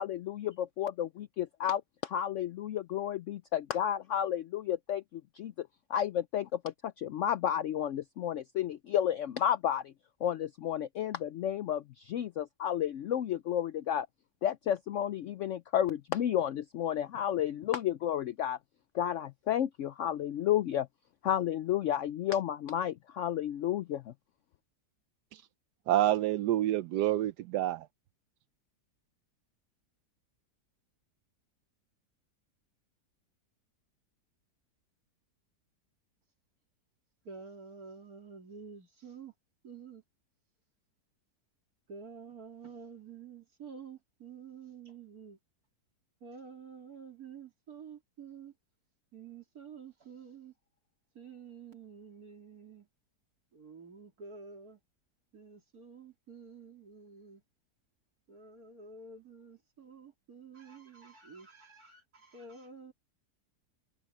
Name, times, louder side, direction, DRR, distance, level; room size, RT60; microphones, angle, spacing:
voice 1, 0.0-9.9 10.2-14.1 14.4-18.6 18.9-20.9 21.2-24.1, left 10 dB, 70° left, 0.7 m, -32 dB
voice 2, 25.9-27.9, right 13 dB, 80° right, 1.2 m, -28 dB
voice 3, 37.2-39.3 39.6-40.0 41.9-45.4 46.2-48.5 49.1-50.5 51.2-52.9 53.5-54.8 55.3-57.4 58.3-62.9, right 5 dB, 60° right, 3.7 m, -49 dB
omnidirectional pair, 1.8 m